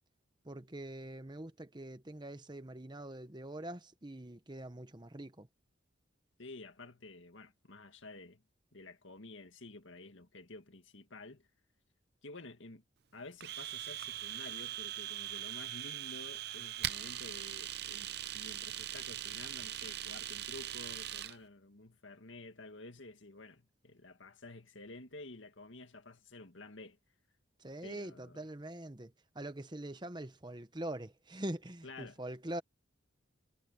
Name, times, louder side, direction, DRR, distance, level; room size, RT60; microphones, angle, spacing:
voice 1, 0.4-5.5 27.6-32.6, right 1 dB, 20° right, 1.0 m, -44 dB
voice 2, 6.4-8.4 8.7-11.5 12.2-12.8 13.1-27.0 27.8-28.4 31.8-32.2, left 2 dB, 70° left, 2.0 m, -51 dB
Domestic sounds home sounds, 13.4-21.4, right 12 dB, 55° right, 0.7 m, -41 dB
head